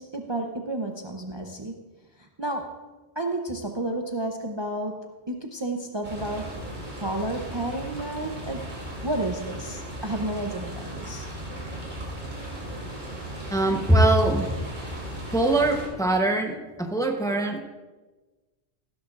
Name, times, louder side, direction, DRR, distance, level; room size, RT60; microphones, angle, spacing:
voice 1, 0.0-1.8 2.2-2.8 3.2-6.5 7.0-8.6 9.0-11.3, right 1 dB, 30° right, 2 dB, 0.7 m, -31 dB
sound 1, 6.0-15.9, right 1 dB, 45° right, 3.1 m, -37 dB
voice 2, 13.5-14.6 15.3-17.6, right 2 dB, 5° left, 3 dB, 0.8 m, -22 dB
15.5 x 12.5 x 2.5 m, 1.2 s
omnidirectional pair, 1.1 m